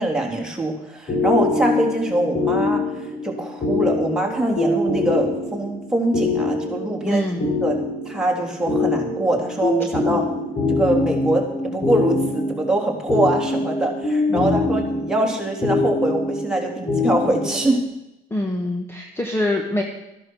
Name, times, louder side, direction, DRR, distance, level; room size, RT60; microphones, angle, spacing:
voice 1, 0.0-7.3 7.6-10.2 10.7-17.9, right 1 dB, 5° right, -1 dB, 3.4 m, -23 dB
sound 1, 1.1-17.8, left 3 dB, 45° left, 6.3 m, -24 dB
voice 2, 7.1-7.4 10.0-10.3 14.3-14.8 18.3-19.8, left 1 dB, 15° left, 2 dB, 1.6 m, -25 dB
14.0 x 11.0 x 6.4 m, 0.89 s
cardioid pair, 110°, 17 cm